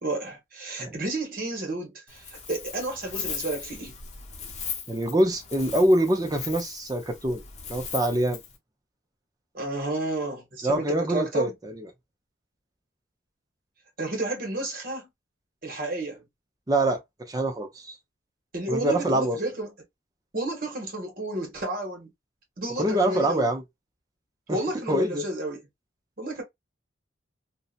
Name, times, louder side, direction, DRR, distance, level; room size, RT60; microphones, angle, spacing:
voice 1, 0.0-4.0 9.5-11.5 14.0-15.1 15.6-16.2 18.5-19.7 20.3-22.1 22.6-23.5 24.5-25.6 26.2-26.4, right 1 dB, 45° right, 1.0 m, -31 dB
Wind, 2.1-8.6, left 6 dB, 35° left, 0.6 m, -38 dB
voice 2, 4.9-7.4 7.7-8.4 10.6-11.9 16.7-17.0 17.3-18.0 18.7-19.4 22.8-23.6 24.5-24.6 24.9-25.2, right 1 dB, 20° right, 0.5 m, -24 dB
2.7 x 2.1 x 2.3 m
head